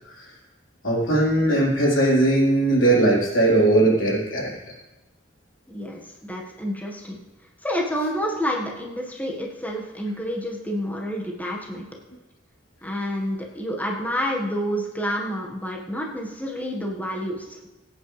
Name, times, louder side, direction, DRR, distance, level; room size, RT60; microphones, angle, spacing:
voice 1, 0.8-4.5, right 2 dB, 80° left, -4 dB, 3.8 m, -19 dB
voice 2, 5.7-7.2 7.6-11.9 12.8-17.7, equal, 10° left, -1 dB, 1.5 m, -29 dB
21.5 x 8.7 x 3.3 m, 1.1 s
head